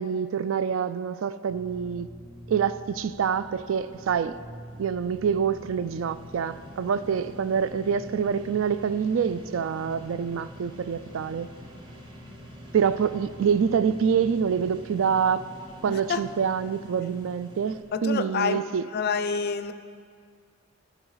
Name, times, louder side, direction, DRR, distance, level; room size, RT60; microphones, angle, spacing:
voice 1, 0.0-2.1 2.5-4.4 4.8-11.5 12.7-15.6 15.8-18.8, right 7 dB, 65° right, 15 dB, 0.3 m, -26 dB
sound 1, 1.5-17.8, equal, 25° right, 1.1 m, -45 dB
voice 2, 15.9-16.2 17.9-18.6 18.9-19.7, left 5 dB, 45° left, 11 dB, 0.4 m, -27 dB
15.0 x 5.9 x 4.0 m, 2.1 s
head